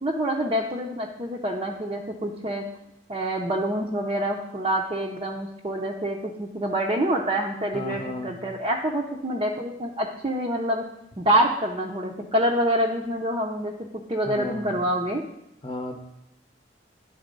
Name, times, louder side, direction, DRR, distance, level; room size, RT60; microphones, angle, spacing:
voice 1, 0.0-2.6 3.1-10.8 11.2-13.7 14.1-15.2, right 1 dB, 30° right, -2 dB, 0.6 m, -26 dB
voice 2, 7.7-8.3 14.2-14.9 15.6-16.0, left 2 dB, 25° left, 4 dB, 0.9 m, -34 dB
9.8 x 4.1 x 5.2 m, 0.86 s
head